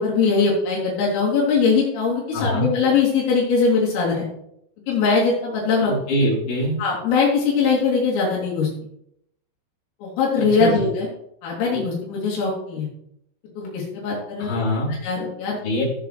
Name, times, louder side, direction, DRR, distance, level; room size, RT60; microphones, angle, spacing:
voice 1, 0.0-4.3 4.9-5.9 6.8-8.7 10.0-11.1 11.4-12.9 13.6-14.5 15.0-15.9, left 5 dB, 80° left, -6 dB, 6.1 m, -21 dB
voice 2, 2.3-2.7 6.1-6.8 10.6-10.8 14.4-14.9 15.6-15.9, equal, 60° left, -6 dB, 6.2 m, -23 dB
17.0 x 8.6 x 3.4 m, 0.75 s
omnidirectional pair, 5.9 m